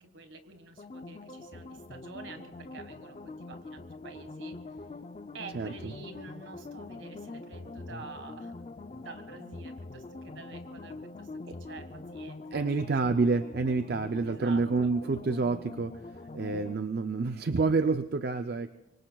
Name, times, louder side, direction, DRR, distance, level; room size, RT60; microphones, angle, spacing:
voice 1, 0.0-4.8 5.3-12.9 14.2-14.9, right 3 dB, 65° right, 7 dB, 1.6 m, -48 dB
sound 1, 0.8-16.7, left 3 dB, 30° left, 0.4 m, -44 dB
voice 2, 5.5-5.9 12.5-18.7, right 4 dB, 50° right, 9 dB, 0.4 m, -28 dB
25.0 x 24.5 x 2.3 m, 1.0 s
head